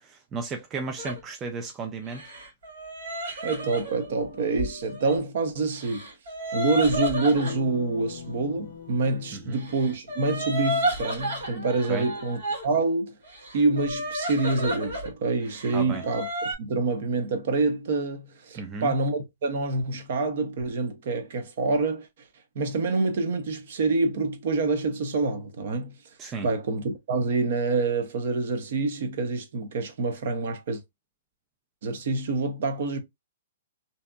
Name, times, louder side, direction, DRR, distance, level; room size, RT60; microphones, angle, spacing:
voice 1, 0.0-2.2 9.3-9.6 11.9-12.1 15.7-16.0 18.6-18.9 26.2-26.5, right 4 dB, 20° right, 0.4 m, -34 dB
sound 1, 1.0-1.2 2.1-5.2 5.7-7.6 9.6-12.6 13.2-15.1 15.4-16.5, equal, 90° right, 1.6 m, -32 dB
voice 2, 3.4-6.1 6.5-13.1 13.5-22.1 22.5-26.0 26.4-30.8 31.8-33.0, right 3 dB, 60° right, 0.8 m, -26 dB
sound 2, 7.4-10.4, left 7 dB, 60° left, 0.4 m, -42 dB
2.7 x 2.5 x 2.2 m
hypercardioid pair, 150°, 0 cm